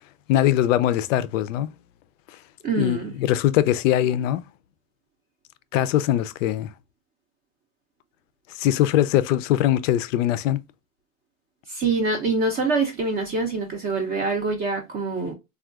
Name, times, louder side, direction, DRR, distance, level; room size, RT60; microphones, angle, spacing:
voice 1, 0.3-1.7 2.8-4.4 5.7-6.7 8.6-10.6, left 12 dB, 60° left, 0.5 m, -21 dB
voice 2, 2.6-3.1 11.7-15.3, right 3 dB, 20° right, 0.5 m, -25 dB
3.5 x 2.3 x 2.3 m
hypercardioid pair, 120°, 44 cm